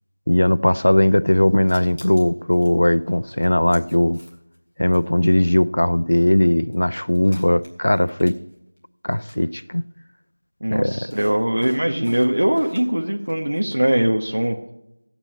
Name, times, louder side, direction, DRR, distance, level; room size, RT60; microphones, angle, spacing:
voice 1, 0.3-4.2 4.8-8.4 9.0-9.9 10.7-11.0, left 1 dB, 55° left, 0.4 m, -18 dB
sound 1, 1.5-2.7 3.4-4.6 4.9-5.0 6.2-6.3 6.7-6.8 7.1-8.8 9.1-9.4 11.1-13.0 13.3-13.8, left 1 dB, 25° left, 2.1 m, -43 dB
voice 2, 10.6-14.6, right 1 dB, 80° right, 1.1 m, -21 dB
15.5 x 8.9 x 4.2 m
figure-of-eight pair, 180°, 0 cm